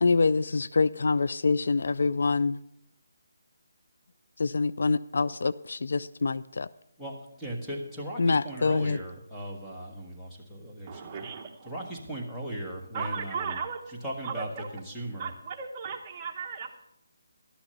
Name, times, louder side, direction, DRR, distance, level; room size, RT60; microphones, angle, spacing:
voice 1, 0.0-2.6 4.4-6.7 8.2-9.0, left 4 dB, 65° left, 17 dB, 0.3 m, -25 dB
voice 2, 7.0-11.3 11.6-13.6 14.0-15.3, right 1 dB, 5° left, -5 dB, 1.5 m, -38 dB
voice 3, 10.9-11.7 12.9-13.8 14.2-14.7 15.2-16.7, right 6 dB, 25° right, 2 dB, 1.1 m, -36 dB
11.5 x 7.1 x 6.8 m, 0.79 s
figure-of-eight pair, 160°, 0 cm